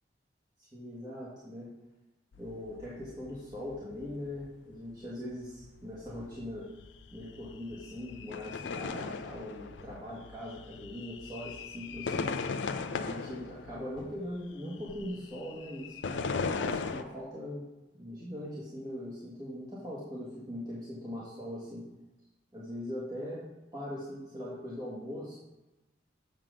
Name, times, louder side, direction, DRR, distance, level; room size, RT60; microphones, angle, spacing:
voice 1, 0.7-1.7 2.4-6.7 7.1-12.3 12.9-17.6 17.9-21.8 22.5-23.4 23.7-25.4, left 1 dB, 25° right, -8 dB, 1.3 m, -41 dB
sound 1, 2.3-17.0, left 4 dB, 80° left, 0.5 m, -39 dB
7.2 x 3.7 x 6.2 m, 1.0 s
head